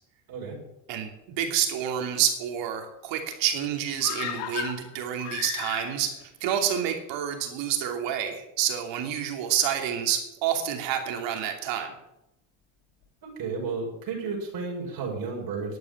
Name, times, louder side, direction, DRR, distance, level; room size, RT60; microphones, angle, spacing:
voice 1, 0.9-6.1 6.4-11.9, right 9 dB, 70° right, 4 dB, 2.9 m, -28 dB
sound 1, 4.0-6.2 6.5-6.6, left 8 dB, 65° left, 2.6 m, -35 dB
voice 2, 13.2-15.8, right 4 dB, 45° right, -1 dB, 5.6 m, -32 dB
11.0 x 8.6 x 8.7 m, 0.87 s
cardioid pair, 115°, 46 cm